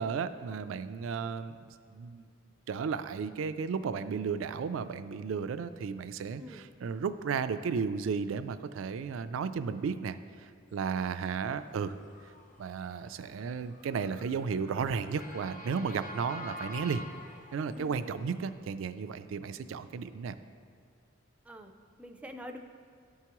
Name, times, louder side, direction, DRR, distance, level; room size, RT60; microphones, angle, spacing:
voice 1, 0.0-1.7 1.9-2.3 2.7-10.2 10.7-11.9 12.6-17.0 17.5-20.4, right 6 dB, 85° right, 12 dB, 0.3 m, -34 dB
Motor vehicle (road) / Siren, 11.2-18.5, left 1 dB, 40° left, 0.7 m, -47 dB
voice 2, 22.0-22.6, equal, 5° right, 4 dB, 0.4 m, -45 dB
12.5 x 4.7 x 3.0 m, 2.2 s
head